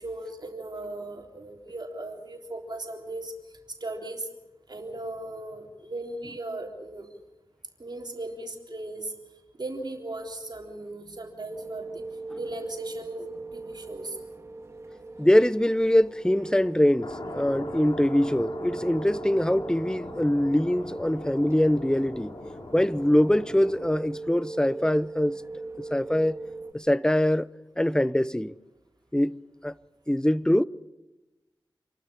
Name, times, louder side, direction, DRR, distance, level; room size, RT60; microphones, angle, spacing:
voice 1, 0.0-3.3 3.7-4.3 4.7-7.1 7.8-9.1 9.5-14.2, right 2 dB, 60° right, 3.6 m, -37 dB
sound 1, 11.5-26.7, right 3 dB, 35° right, 2.8 m, -40 dB
voice 2, 15.2-22.3 22.7-25.4 25.9-26.4 26.7-27.5 27.8-28.5 29.1-29.7 30.1-30.6, left 1 dB, 10° left, 0.7 m, -23 dB
sound 2, 17.0-24.0, left 2 dB, 60° left, 3.1 m, -41 dB
27.5 x 12.5 x 9.9 m
cardioid pair, 50°, 8 cm